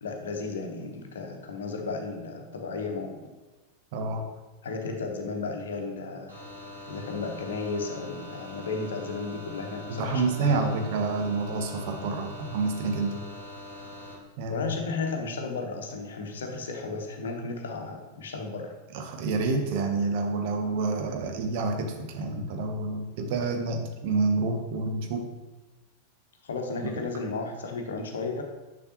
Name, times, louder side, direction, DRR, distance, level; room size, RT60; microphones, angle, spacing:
voice 1, 0.0-3.2 4.6-6.3 6.9-10.7 14.5-18.7 26.4-28.4, left 4 dB, 65° left, 3 dB, 1.0 m, -34 dB
voice 2, 3.9-4.3 9.9-13.2 14.4-14.7 18.9-25.3 26.9-27.0, right 3 dB, 50° right, 4 dB, 0.9 m, -28 dB
sound 1, 6.3-14.1, left 1 dB, 75° right, 2.0 m, -42 dB
6.7 x 6.2 x 2.9 m, 1.2 s
figure-of-eight pair, 90°, 0 cm